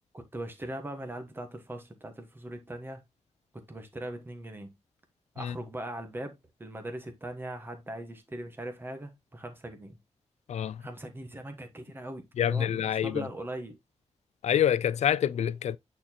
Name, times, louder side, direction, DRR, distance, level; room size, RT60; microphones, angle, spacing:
voice 1, 0.1-3.0 3.5-4.7 5.3-10.0 10.8-13.8, right 1 dB, 20° right, 1.3 m, -40 dB
voice 2, 10.5-10.8 12.4-13.3 14.4-15.8, left 9 dB, 70° left, 0.4 m, -27 dB
8.8 x 4.3 x 2.8 m
wide cardioid pair, 150°, 12 cm